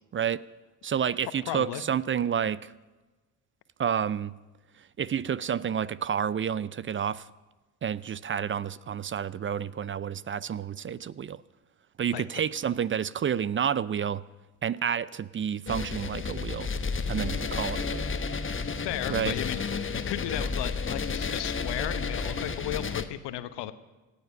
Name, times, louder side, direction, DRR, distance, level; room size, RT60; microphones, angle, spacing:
voice 1, 0.1-0.4 0.8-2.7 3.8-4.3 5.0-7.3 7.8-11.4 12.0-14.2 14.6-16.7 17.1-18.1 19.1-19.4, right 8 dB, 25° right, 20 dB, 0.5 m, -30 dB
voice 2, 1.5-1.8 12.1-12.4 18.8-23.7, left 13 dB, 60° left, 12 dB, 1.1 m, -35 dB
sound 1, 15.7-23.0, left 5 dB, 25° left, 1.2 m, -32 dB
27.0 x 9.9 x 5.4 m, 1.2 s
figure-of-eight pair, 45°, 47 cm